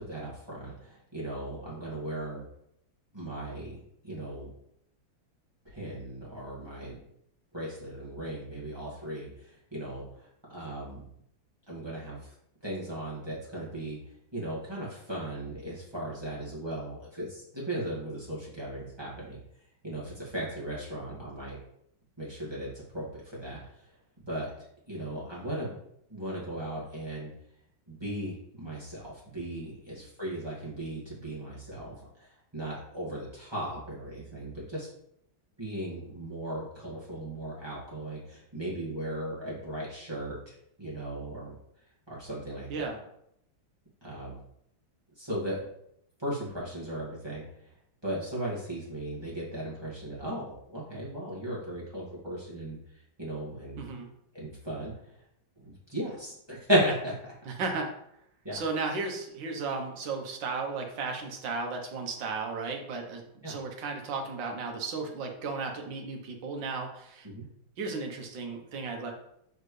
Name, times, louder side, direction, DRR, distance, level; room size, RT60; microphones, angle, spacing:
voice 1, 0.0-2.4 3.1-4.5 5.7-7.0 7.5-11.1 11.7-12.3 12.6-14.0 14.3-19.4 19.8-21.6 22.2-23.9 24.3-24.5 24.9-25.8 26.1-27.3 27.9-34.9 35.6-41.6 42.1-42.7 44.0-44.4 45.2-45.6 46.2-47.7 48.0-53.9 54.3-55.2 55.6-57.3 58.4-58.6 63.4-63.6 67.2-67.4, right 1 dB, 10° right, -7 dB, 1.9 m, -36 dB
voice 2, 57.5-57.9 58.5-67.3 67.8-69.1, right 4 dB, 65° right, 3 dB, 1.7 m, -34 dB
6.5 x 4.7 x 3.2 m, 0.74 s
omnidirectional pair, 2.3 m